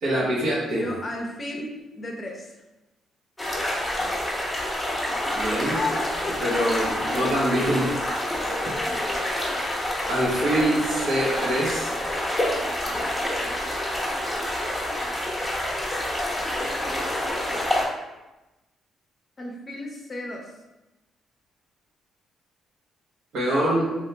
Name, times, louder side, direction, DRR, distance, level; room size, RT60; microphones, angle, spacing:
voice 1, 0.0-0.9 5.3-5.8 6.4-7.9 10.1-11.9 23.3-24.0, right 1 dB, 75° right, -5 dB, 1.1 m, -24 dB
voice 2, 0.7-2.5 5.6-7.3 8.6-9.7 19.4-20.5, left 2 dB, 35° left, 0 dB, 0.6 m, -34 dB
sound 1, 3.4-17.8, left 1 dB, 10° left, 0.9 m, -27 dB
2.8 x 2.8 x 3.3 m, 1.0 s
cardioid pair, 90°, 0 cm